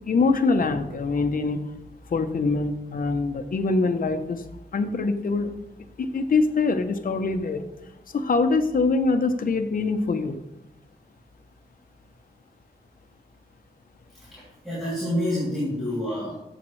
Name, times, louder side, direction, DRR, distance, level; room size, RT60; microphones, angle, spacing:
voice 1, 0.1-1.6 2.1-4.4 4.7-5.5 6.0-7.6 8.1-10.4, left 3 dB, 55° left, 7 dB, 0.9 m, -24 dB
voice 2, 14.1-16.4, left 1 dB, ahead, -10 dB, 3.0 m, -28 dB
13.5 x 7.2 x 3.2 m, 0.91 s
wide cardioid pair, 150°, 17 cm